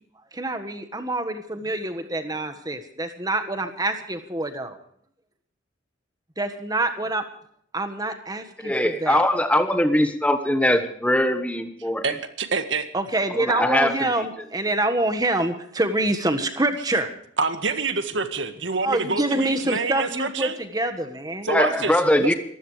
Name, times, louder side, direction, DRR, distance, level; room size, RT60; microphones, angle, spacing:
voice 1, 0.3-4.8 6.4-7.2 7.7-9.2 12.9-17.1 18.8-21.5, right 2 dB, 20° right, 8 dB, 1.5 m, -26 dB
voice 2, 8.6-12.0 13.6-13.9 21.5-22.3, left 1 dB, 5° left, 8 dB, 1.2 m, -21 dB
voice 3, 12.0-12.9 17.4-20.6 21.4-22.3, right 4 dB, 70° right, 8 dB, 1.7 m, -27 dB
25.5 x 15.0 x 3.3 m, 0.65 s
head